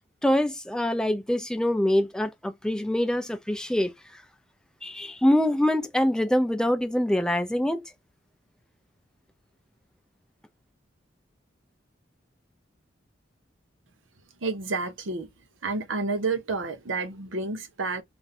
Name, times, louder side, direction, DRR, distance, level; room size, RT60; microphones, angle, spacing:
voice 1, 0.2-3.9 4.8-7.8, left 1 dB, 5° left, 0.4 m, -24 dB
voice 2, 14.4-15.3 15.6-18.0, right 3 dB, 90° right, 0.8 m, -30 dB
2.6 x 2.2 x 4.1 m
head